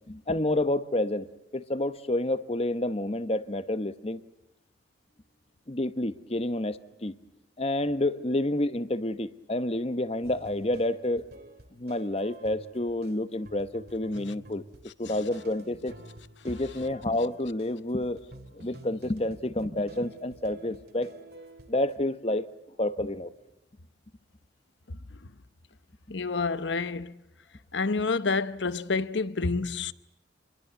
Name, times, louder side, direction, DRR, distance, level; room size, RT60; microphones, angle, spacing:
voice 1, 0.1-1.3 1.5-4.2 5.7-7.2 7.6-11.2 11.8-14.6 15.0-15.9 16.4-18.2 18.5-21.1 21.7-22.5 22.8-23.3, left 1 dB, 30° left, 1.0 m, -29 dB
sound 1, 10.2-22.0, right 1 dB, 55° right, 2.3 m, -49 dB
voice 2, 26.1-27.1 27.7-29.9, left 4 dB, 75° left, 0.9 m, -28 dB
26.5 x 22.0 x 8.2 m
head